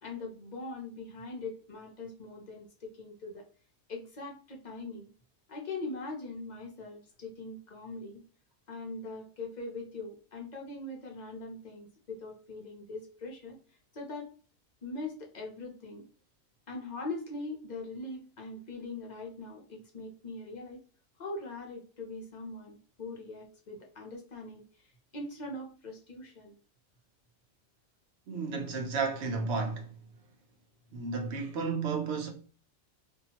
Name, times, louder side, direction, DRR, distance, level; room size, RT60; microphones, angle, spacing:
voice 1, 0.0-3.4 3.9-5.1 5.5-8.2 8.7-13.6 13.9-14.3 14.8-16.0 16.7-20.8 21.2-24.9 25.1-26.6, left 2 dB, 50° left, 0.5 m, -41 dB
voice 2, 28.3-29.9 30.9-32.3, right 4 dB, 60° right, 0.9 m, -32 dB
2.7 x 2.3 x 2.8 m
omnidirectional pair, 1.4 m